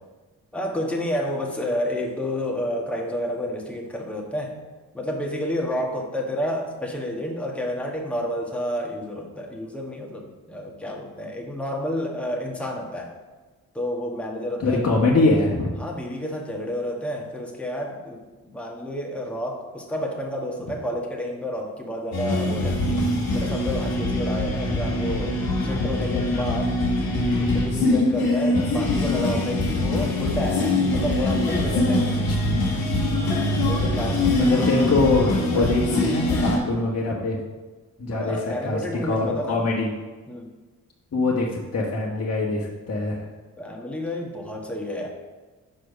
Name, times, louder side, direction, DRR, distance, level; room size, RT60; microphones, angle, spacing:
voice 1, 0.5-4.6 4.9-13.1 13.7-14.8 15.8-23.0 23.3-26.8 27.4-32.0 33.7-35.8 36.3-36.6 38.1-39.6 40.3-40.5 43.6-45.1, left 1 dB, 5° left, -1 dB, 1.6 m, -30 dB
voice 2, 14.6-15.7 32.3-32.4 34.4-37.4 38.0-39.9 41.1-43.2, left 3 dB, 45° left, -3 dB, 1.4 m, -23 dB
sound 1, 22.1-36.6, left 1 dB, 90° left, 1.2 m, -23 dB
6.5 x 4.9 x 5.1 m, 1.3 s
supercardioid pair, 50°, 36 cm